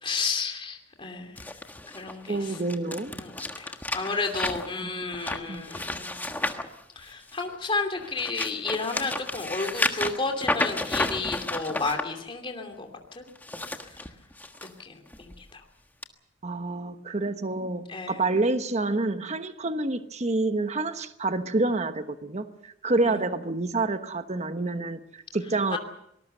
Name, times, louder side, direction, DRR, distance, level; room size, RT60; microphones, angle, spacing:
voice 1, 0.0-1.5 1.9-2.6 3.1-6.4 7.0-13.2 13.8-14.1 14.6-15.6 17.9-18.2 23.0-23.2 25.7-25.8, left 4 dB, 25° left, 4 dB, 2.7 m, -32 dB
sound 1, 1.4-7.5 8.0-12.0 13.3-14.7 15.1-15.4 16.0-16.1, left 2 dB, 10° left, 1.4 m, -32 dB
voice 2, 2.3-3.1 4.8-4.9 5.5-5.7 16.4-25.8, right 2 dB, 35° right, 9 dB, 1.1 m, -28 dB
24.5 x 19.5 x 6.7 m, 0.78 s
head